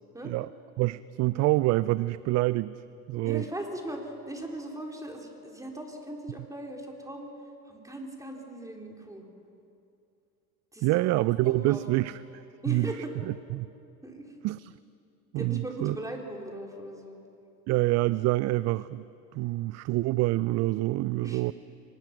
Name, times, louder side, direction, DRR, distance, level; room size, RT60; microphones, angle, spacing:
voice 1, 0.8-2.8 3.1-3.4 10.8-12.2 12.7-12.9 13.5-13.7 14.4-14.7 15.3-16.0 17.7-19.0 19.3-21.5, right 19 dB, 40° right, 18 dB, 0.4 m, -26 dB
voice 2, 3.2-7.3 7.7-9.2 10.7-11.0 11.4-11.9 12.6-13.2 14.0-14.3 15.4-17.2 21.2-21.4, right 1 dB, 5° right, 1 dB, 3.9 m, -39 dB
23.5 x 20.5 x 6.0 m, 2.6 s
hypercardioid pair, 80°, 45 cm